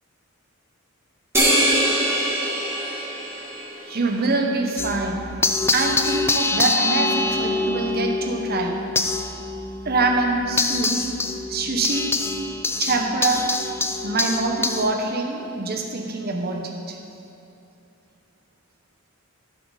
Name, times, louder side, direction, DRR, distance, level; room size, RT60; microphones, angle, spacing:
sound 1, 1.3-4.1, right 1 dB, 10° right, 2.0 m, -22 dB
voice 1, 3.8-5.3 5.7-8.8 9.8-11.1 11.5-12.1 12.8-13.4 14.0-17.0, right 3 dB, 45° right, 2 dB, 1.1 m, -24 dB
sound 2, 4.8-14.9, left 3 dB, 10° left, 0.4 m, -25 dB
14.5 x 7.3 x 4.1 m, 2.6 s
head